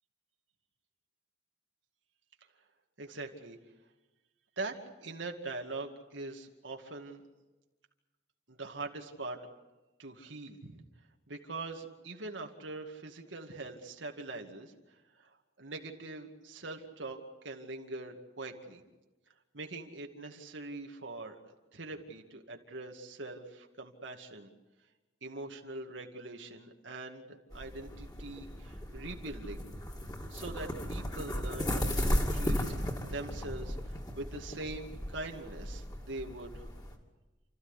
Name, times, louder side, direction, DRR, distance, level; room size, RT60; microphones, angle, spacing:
voice 1, 3.0-3.6 4.6-4.7 5.0-7.2 8.5-9.4 10.0-10.8 11.3-14.7 15.1-17.2 17.4-18.8 19.5-24.5 25.2-29.7 30.3-36.7, right 2 dB, 90° right, 2 dB, 2.3 m, -43 dB
sound 1, 27.5-36.9, equal, 20° left, 2.7 m, -35 dB
29.5 x 14.0 x 9.9 m, 1.1 s
head